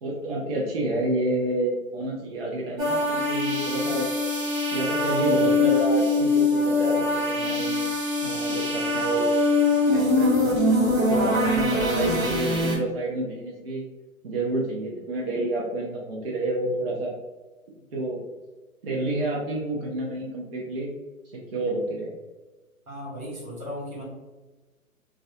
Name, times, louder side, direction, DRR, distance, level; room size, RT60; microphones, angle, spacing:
voice 1, 0.0-4.1 4.7-7.8 8.2-9.3 9.9-10.6 11.0-13.8 14.2-17.2 17.9-18.2 18.8-20.9 21.3-22.1, right 1 dB, 45° right, -3 dB, 0.5 m, -29 dB
sound 1, 2.8-12.8, left 2 dB, 70° right, 1.1 m, -23 dB
voice 2, 22.9-24.0, equal, 85° right, -4 dB, 1.3 m, -36 dB
2.3 x 2.1 x 2.6 m, 1.2 s
figure-of-eight pair, 135°, 43 cm